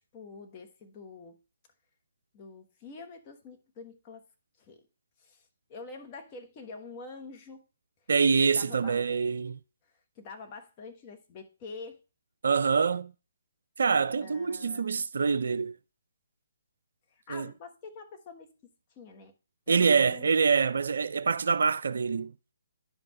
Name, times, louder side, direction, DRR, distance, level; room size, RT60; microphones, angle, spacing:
voice 1, 0.1-1.4 2.3-4.2 4.6-4.8 5.2-7.6 8.5-9.0 10.1-12.0 14.2-14.9 17.1-18.5 18.9-19.3 19.7-20.3, left 4 dB, 25° left, 1.3 m, -46 dB
voice 2, 8.1-9.6 12.4-13.1 13.8-15.8 17.3-17.5 19.7-22.3, right 5 dB, 60° right, 0.3 m, -25 dB
10.5 x 5.3 x 3.1 m
figure-of-eight pair, 135°, 0 cm